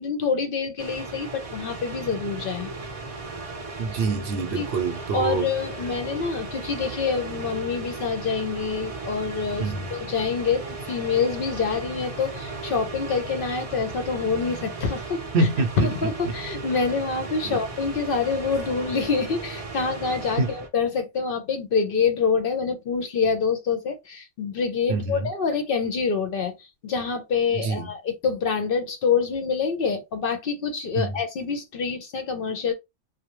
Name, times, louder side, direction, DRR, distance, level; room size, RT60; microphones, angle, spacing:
voice 1, 0.0-2.7 4.6-4.7 5.1-15.5 15.8-32.7, left 5 dB, 60° left, 0.6 m, -26 dB
sound 1, 0.8-20.7, right 3 dB, 40° right, 0.6 m, -36 dB
voice 2, 3.8-5.5 9.6-9.9 15.3-15.9 17.4-17.6 20.4-20.5 24.9-25.3 27.6-27.9 31.0-31.2, right 3 dB, 65° right, 0.8 m, -25 dB
2.3 x 2.1 x 2.9 m
omnidirectional pair, 1.2 m